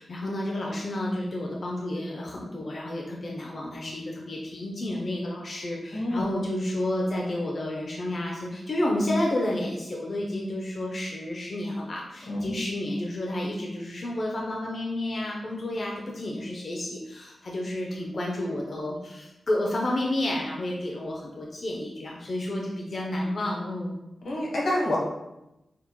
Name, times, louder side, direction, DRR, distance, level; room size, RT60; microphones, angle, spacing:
voice 1, 0.0-24.0, left 1 dB, 40° left, -1 dB, 0.5 m, -30 dB
voice 2, 5.9-6.2 12.3-12.6 24.2-25.0, left 1 dB, 60° left, -4 dB, 1.0 m, -27 dB
5.8 x 2.1 x 2.9 m, 0.91 s
wide cardioid pair, 175°, 0 cm